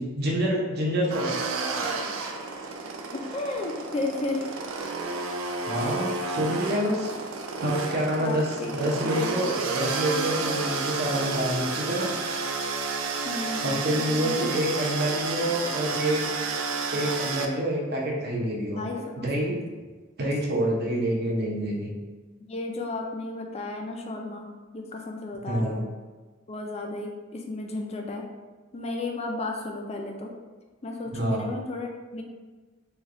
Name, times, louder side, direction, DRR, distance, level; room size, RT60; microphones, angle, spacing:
voice 1, 0.0-1.3 1.7-1.9 5.7-7.1 7.6-12.1 13.6-16.2 16.9-18.8 19.2-19.6 20.2-21.9 25.5-25.8 31.1-31.4, right 1 dB, 55° right, -2 dB, 0.7 m, -27 dB
sound 1, 1.1-17.5, right 4 dB, 85° right, 0.4 m, -31 dB
voice 2, 3.1-4.5 8.2-9.4 13.2-14.5 18.7-19.6 22.5-25.8 26.5-28.2 28.7-30.3 30.8-32.2, left 2 dB, 30° left, 2 dB, 0.4 m, -34 dB
3.2 x 2.3 x 3.7 m, 1.3 s
head